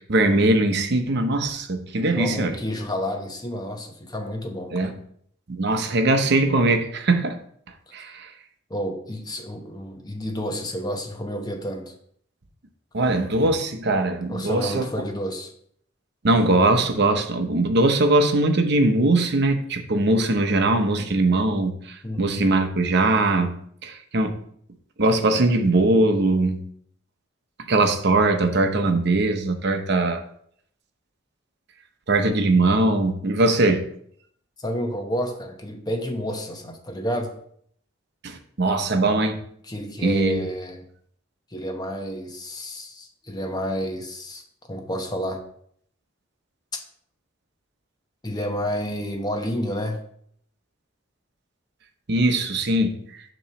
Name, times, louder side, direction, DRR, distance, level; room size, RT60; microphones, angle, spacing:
voice 1, 0.0-2.5 4.7-4.9 5.5-7.4 7.9-8.3 12.9-14.9 16.2-23.6 23.8-24.4 25.0-26.6 27.7-30.2 32.1-33.8 38.2-39.4 40.0-40.4 52.1-53.0, right 2 dB, 60° right, 0.8 m, -21 dB
voice 2, 2.1-5.0 8.0-8.2 8.7-11.9 14.3-15.5 22.0-22.5 34.6-37.4 39.6-40.9 41.5-44.4 44.7-45.4 48.2-50.0, equal, 20° left, 0.9 m, -30 dB
7.0 x 3.1 x 5.7 m
head